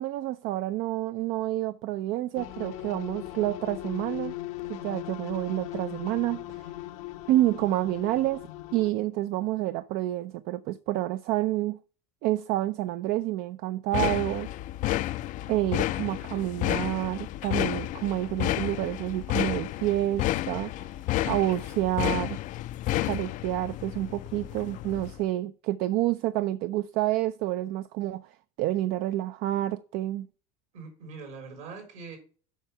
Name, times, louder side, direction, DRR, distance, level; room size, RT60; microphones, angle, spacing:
voice 1, 0.0-4.4 4.7-6.7 7.3-11.8 12.2-14.5 15.5-20.9 21.3-22.4 23.0-30.3, right 15 dB, 60° right, 0.5 m, -29 dB
sound 1, 2.4-8.9, left 15 dB, 75° left, 0.8 m, -39 dB
sound 2, 13.9-25.2, left 15 dB, 45° left, 0.4 m, -31 dB
voice 2, 15.5-16.4 30.7-32.2, right 4 dB, 75° right, 3.9 m, -44 dB
7.2 x 5.7 x 5.6 m
supercardioid pair, 95°, 17 cm